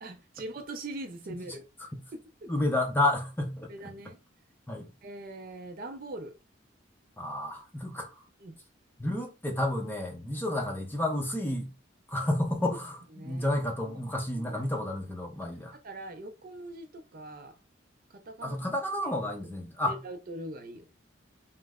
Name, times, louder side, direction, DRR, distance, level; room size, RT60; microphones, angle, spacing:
voice 1, 0.0-1.6 2.1-2.5 3.7-4.2 5.0-6.4 8.4-8.6 13.2-13.5 13.9-14.0 14.3-14.8 15.8-17.6 18.1-18.6 19.8-20.8, right 2 dB, 50° right, 0.5 m, -42 dB
voice 2, 2.5-3.7 4.7-4.9 7.2-8.1 9.0-11.7 12.1-15.8 18.4-20.0, left 1 dB, 10° left, 0.5 m, -30 dB
3.1 x 2.0 x 3.5 m
head